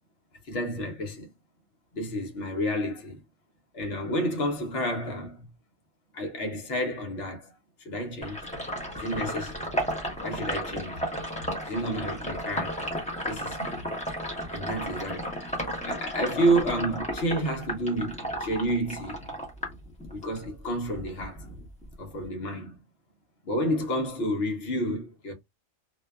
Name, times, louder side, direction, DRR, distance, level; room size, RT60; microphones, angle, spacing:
voice 1, 0.4-1.3 1.9-3.2 3.7-5.5 6.1-7.5 7.8-8.5 8.9-9.7 10.2-11.0 11.6-12.9 13.3-13.9 14.5-15.3 15.8-19.3 20.1-21.5 22.0-22.8 23.4-25.3, right 1 dB, 55° left, 0.9 m, -30 dB
Sink (filling or washing), 8.2-20.5 20.8-22.2, equal, 5° left, 0.7 m, -33 dB
2.6 x 2.2 x 2.2 m
omnidirectional pair, 1.4 m